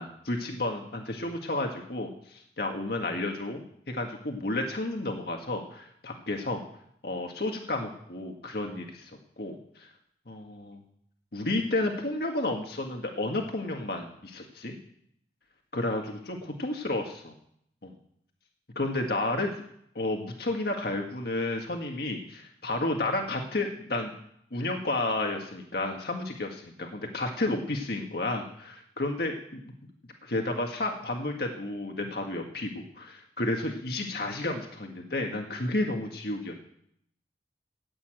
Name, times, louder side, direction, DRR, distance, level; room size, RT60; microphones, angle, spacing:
voice 1, 0.0-6.6 7.0-9.1 9.4-9.9 10.3-10.8 11.3-14.7 15.7-17.4 17.8-17.9 18.8-19.6 20.0-24.1 24.5-29.7 30.2-36.5, left 2 dB, 60° left, 2 dB, 1.7 m, -31 dB
14.0 x 8.5 x 8.9 m, 0.71 s
head